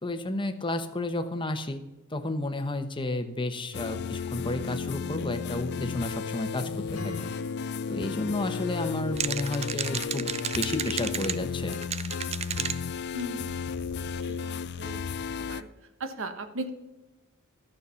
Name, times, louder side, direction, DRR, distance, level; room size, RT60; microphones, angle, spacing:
voice 1, 0.0-1.8 2.1-7.3 7.9-11.8, left 2 dB, 25° left, 8 dB, 0.9 m, -32 dB
sound 1, 3.7-15.6, left 6 dB, 50° left, 0.4 m, -33 dB
Acoustic guitar / Strum, 6.9-11.2, left 3 dB, 85° left, 1.6 m, -46 dB
sound 2, 9.2-11.4 11.7-12.8 13.2-13.3 13.5-13.6 13.9-14.4, right 8 dB, 30° right, 0.4 m, -33 dB
voice 2, 13.1-13.6 14.2-15.0 15.3-15.7 16.0-16.7, right 1 dB, 60° right, 9 dB, 1.1 m, -37 dB
12.5 x 6.6 x 5.7 m, 1.1 s
head